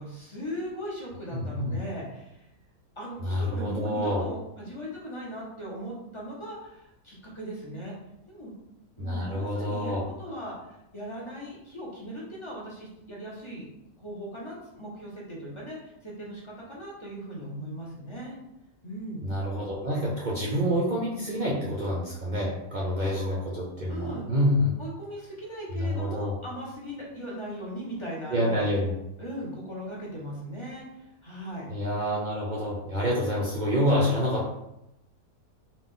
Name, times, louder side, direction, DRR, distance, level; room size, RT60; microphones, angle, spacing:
voice 1, 0.0-2.5 3.0-3.2 3.5-7.9 8.3-8.5 9.0-13.7 14.0-18.3 18.8-19.2 23.1-23.3 23.9-24.2 24.8-28.6 29.2-31.7, equal, 25° left, -5 dB, 0.7 m, -38 dB
voice 2, 1.3-1.8 3.2-4.2 9.0-10.0 19.2-24.7 25.7-26.3 28.3-28.9 31.7-34.5, equal, 55° right, -5 dB, 0.5 m, -27 dB
3.9 x 2.5 x 3.7 m, 0.85 s
omnidirectional pair, 1.7 m